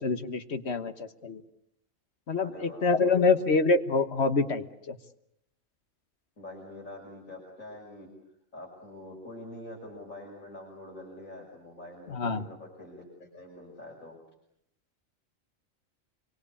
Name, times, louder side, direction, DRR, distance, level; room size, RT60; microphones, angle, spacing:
voice 1, 0.0-1.4 2.3-5.0 12.1-12.5, left 3 dB, 55° left, 10 dB, 1.6 m, -26 dB
voice 2, 2.4-3.4 6.4-8.1 8.5-14.2, left 1 dB, 85° left, -3 dB, 6.5 m, -45 dB
27.0 x 24.0 x 8.5 m, 0.77 s
omnidirectional pair, 1.4 m